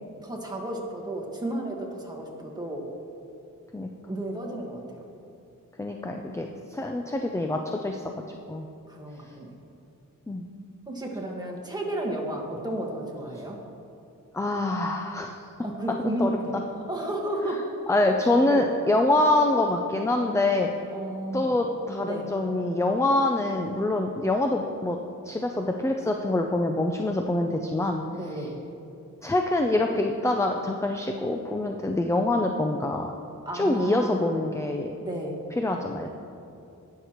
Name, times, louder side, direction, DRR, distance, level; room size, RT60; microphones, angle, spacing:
voice 1, 0.2-2.9 4.1-5.0 8.9-9.6 10.9-13.6 15.6-16.6 16.9-17.7 18.4-18.7 20.9-21.6 22.0-22.3 28.1-28.6 33.4-34.2 35.0-35.4, right 1 dB, 10° right, -1 dB, 1.6 m, -32 dB
voice 2, 5.8-8.0 8.5-8.7 10.3-10.5 14.3-15.4 16.2-16.6 17.9-20.7 21.3-25.0 25.2-28.0 28.3-28.4 29.2-33.1 33.5-34.9 35.6-36.1, left 2 dB, 10° left, 3 dB, 0.4 m, -25 dB
17.5 x 6.6 x 3.0 m, 2.7 s
wide cardioid pair, 95°, 32 cm